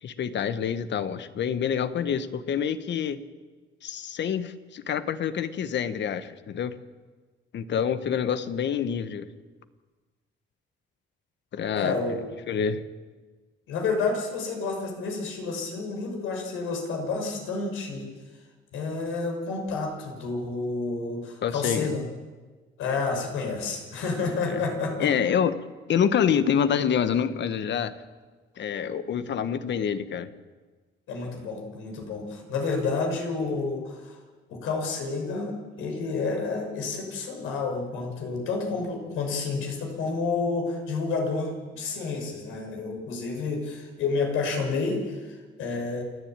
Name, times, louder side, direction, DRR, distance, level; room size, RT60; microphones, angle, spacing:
voice 1, 0.0-3.2 3.8-6.7 7.5-9.3 11.5-12.8 21.4-22.0 24.5-24.6 25.0-25.6 25.9-28.0 28.6-30.3, left 8 dB, 65° left, 12 dB, 1.4 m, -27 dB
voice 2, 11.7-12.2 13.7-18.1 18.7-22.0 22.8-25.1 31.1-34.2 34.5-46.0, left 4 dB, 90° left, 2 dB, 6.0 m, -30 dB
29.0 x 10.5 x 9.1 m, 1.4 s
cardioid pair, 90°, 20 cm